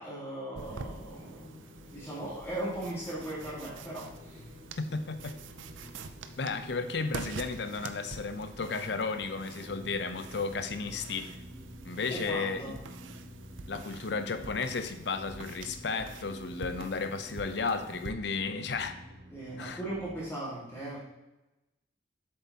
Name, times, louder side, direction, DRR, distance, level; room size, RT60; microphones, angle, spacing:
voice 1, 0.0-1.6 1.9-4.4 12.1-12.8 19.3-21.0, right 1 dB, 15° left, -7 dB, 1.9 m, -38 dB
sound 1, 0.5-18.1, right 4 dB, 85° right, 0.5 m, -47 dB
sound 2, 0.6-20.2, left 1 dB, 50° right, 1.7 m, -50 dB
voice 2, 4.8-5.4 6.4-11.3 11.8-12.8 13.7-19.0 19.6-19.8, left 4 dB, 60° left, 9 dB, 0.6 m, -33 dB
7.8 x 7.0 x 2.9 m, 1.0 s
head